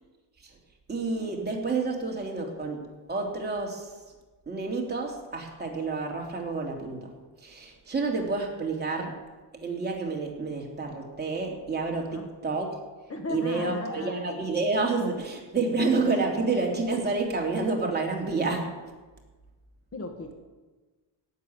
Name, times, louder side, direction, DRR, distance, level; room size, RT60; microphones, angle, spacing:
voice 1, 0.9-3.9 4.5-7.1 7.4-9.2 9.6-12.7 13.3-18.7, right 3 dB, 20° right, 0 dB, 3.1 m, -29 dB
voice 2, 13.1-14.2 19.9-20.3, left 2 dB, 30° left, 4 dB, 1.8 m, -36 dB
16.5 x 7.6 x 9.5 m, 1.3 s
cardioid pair, 135°, 44 cm